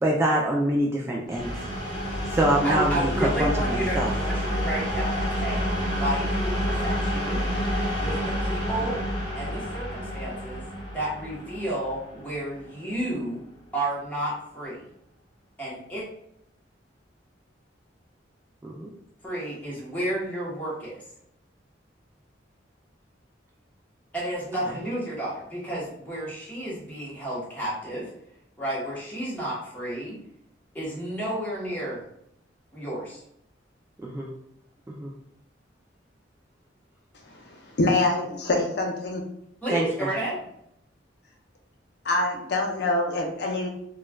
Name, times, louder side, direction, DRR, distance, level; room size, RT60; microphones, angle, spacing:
voice 1, 0.0-1.5 2.3-4.1 18.6-18.9 24.8-24.9 34.0-34.3 34.9-35.1 39.7-40.1, right 1 dB, 15° right, -2 dB, 0.3 m, -25 dB
sound 1, 1.3-12.9, equal, 25° left, 1.5 m, -29 dB
voice 2, 2.6-7.4 8.0-9.0 9.3-10.6 10.9-13.4 13.7-14.9 15.6-16.0 19.2-21.0 24.1-28.1 28.6-30.2 30.7-32.1 32.7-33.2 39.6-40.4, right 1 dB, 10° left, -7 dB, 1.1 m, -31 dB
voice 3, 37.3-39.2 42.0-43.7, left 2 dB, 60° left, 1 dB, 0.6 m, -25 dB
4.3 x 2.3 x 2.2 m, 0.76 s
head